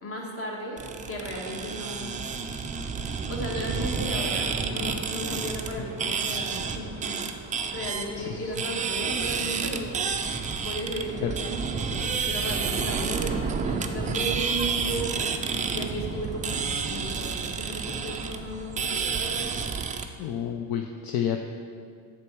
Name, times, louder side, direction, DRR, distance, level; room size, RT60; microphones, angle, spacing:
voice 1, 0.0-2.1 3.3-7.2 7.7-10.2 10.6-19.8, equal, 30° left, -1 dB, 1.7 m, -35 dB
sound 1, 0.8-20.1, right 5 dB, 20° right, 0.4 m, -30 dB
voice 2, 8.2-8.5 11.2-11.3 20.2-21.4, left 9 dB, 60° left, 4 dB, 0.6 m, -30 dB
7.0 x 6.7 x 4.7 m, 2.2 s
cardioid pair, 115°, 40 cm